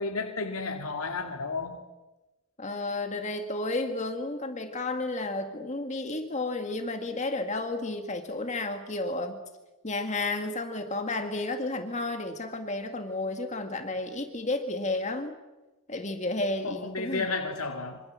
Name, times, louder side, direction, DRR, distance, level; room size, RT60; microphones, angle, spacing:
voice 1, 0.0-1.8 16.6-18.0, left 3 dB, 85° left, 3 dB, 2.5 m, -32 dB
voice 2, 2.6-9.4 9.8-15.4 15.9-17.3, left 2 dB, 35° left, 5 dB, 1.9 m, -32 dB
26.5 x 25.0 x 7.5 m, 1.1 s
head